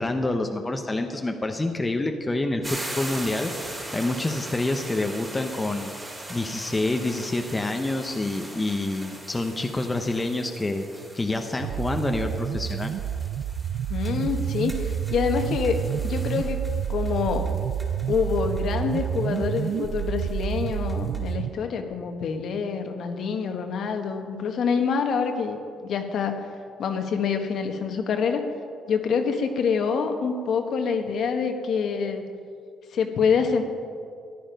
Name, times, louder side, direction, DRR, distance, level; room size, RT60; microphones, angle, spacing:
voice 1, 0.0-5.9 6.3-10.8 11.1-12.9, left 2 dB, 15° left, 5 dB, 0.8 m, -27 dB
sound 1, 2.6-21.3, right 1 dB, 10° right, 2.2 m, -41 dB
sound 2, 11.6-21.5, right 9 dB, 60° right, 0.4 m, -29 dB
voice 2, 13.9-16.6 16.9-17.5 18.1-26.4 26.8-28.4 28.9-32.2 32.9-33.6, left 6 dB, 60° left, 5 dB, 1.3 m, -26 dB
14.5 x 11.0 x 5.2 m, 2.3 s
cardioid pair, 130°, 0 cm